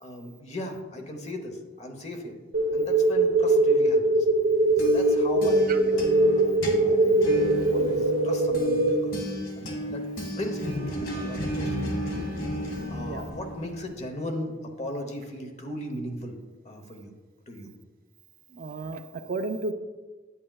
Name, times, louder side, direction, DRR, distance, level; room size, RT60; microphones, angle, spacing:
voice 1, 0.0-2.4 2.7-4.3 4.8-7.2 7.7-12.3 12.6-16.4 16.6-17.1 17.5-17.7, left 1 dB, 35° left, 4 dB, 0.9 m, -37 dB
sound 1, 2.5-9.0, right 2 dB, 75° right, 1.0 m, -22 dB
sound 2, 4.5-14.1, equal, 75° left, 1.4 m, -33 dB
voice 2, 18.5-19.7, right 3 dB, 45° right, 7 dB, 0.4 m, -33 dB
8.7 x 8.5 x 2.3 m, 1.3 s
head